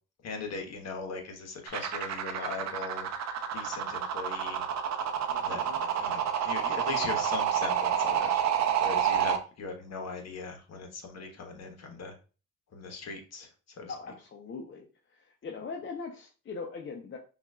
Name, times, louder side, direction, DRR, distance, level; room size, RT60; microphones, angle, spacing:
voice 1, 0.2-3.1 3.5-4.6 5.4-8.4 8.8-12.1 12.7-13.5 13.8-13.9, left 4 dB, 50° left, 3 dB, 1.2 m, -39 dB
sound 1, 1.7-9.4, right 8 dB, 55° right, 0.7 m, -29 dB
voice 2, 5.3-5.8 13.9-17.2, left 4 dB, 35° left, 1 dB, 0.7 m, -41 dB
5.6 x 2.5 x 2.3 m, 0.35 s
supercardioid pair, 75°, 33 cm